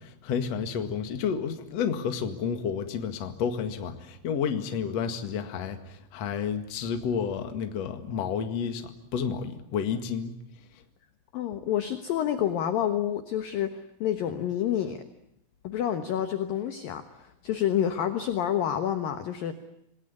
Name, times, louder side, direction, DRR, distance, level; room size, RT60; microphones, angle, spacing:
voice 1, 0.0-10.3 10.7-10.8, left 7 dB, 50° left, 7 dB, 2.1 m, -31 dB
voice 2, 11.3-15.0 15.6-19.5, left 10 dB, 70° left, 8 dB, 2.2 m, -28 dB
27.0 x 19.5 x 9.6 m, 0.78 s
omnidirectional pair, 5.7 m